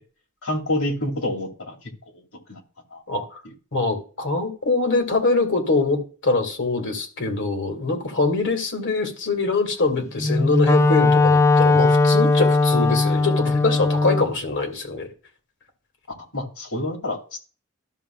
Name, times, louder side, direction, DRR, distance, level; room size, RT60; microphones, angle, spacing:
voice 1, 0.4-1.8 2.5-2.6 2.9-3.0 16.3-17.4, left 1 dB, 80° left, -1 dB, 2.3 m, -27 dB
voice 2, 3.1-3.4 3.7-15.1, left 3 dB, 55° left, 5 dB, 1.9 m, -23 dB
Wind instrument woodwind instrument, 10.2-14.3, left 3 dB, 15° left, 0.4 m, -18 dB
13.5 x 6.9 x 2.2 m, 0.37 s
head